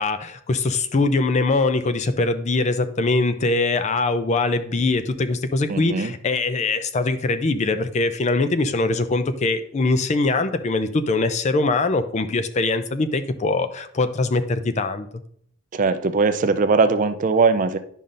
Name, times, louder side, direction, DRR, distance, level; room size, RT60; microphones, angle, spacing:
voice 1, 0.0-15.1, left 3 dB, 30° left, 10 dB, 0.4 m, -22 dB
voice 2, 5.7-6.1 15.7-17.8, right 4 dB, 35° right, 10 dB, 0.4 m, -20 dB
10.5 x 5.3 x 2.5 m, 0.65 s
head